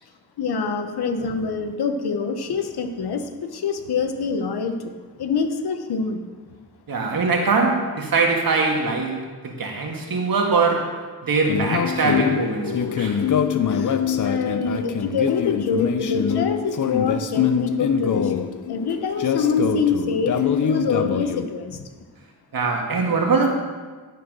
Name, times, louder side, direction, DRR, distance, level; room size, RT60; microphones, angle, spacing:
voice 1, 0.4-6.2 13.7-21.9, left 5 dB, 85° left, 7 dB, 0.9 m, -25 dB
voice 2, 6.9-13.2 22.5-23.5, right 4 dB, 65° right, 1 dB, 1.8 m, -22 dB
sound 1, 11.5-21.4, left 8 dB, 55° left, 0.6 m, -24 dB
11.0 x 4.7 x 6.1 m, 1.4 s
cardioid pair, 75°, 38 cm